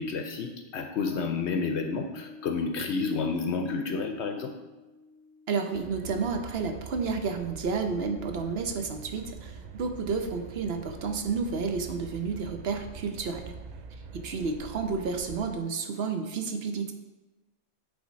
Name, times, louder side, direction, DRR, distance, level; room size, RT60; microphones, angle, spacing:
voice 1, 0.0-4.5, left 4 dB, 65° left, 6 dB, 0.8 m, -30 dB
Bass guitar, 1.0-8.2, left 4 dB, 35° right, 2.5 m, -49 dB
voice 2, 5.5-13.5 14.1-16.9, right 4 dB, 60° right, 6 dB, 0.9 m, -31 dB
sound 1, 5.7-15.6, right 5 dB, 85° right, 0.4 m, -44 dB
8.6 x 3.6 x 5.1 m, 1.1 s
omnidirectional pair, 1.3 m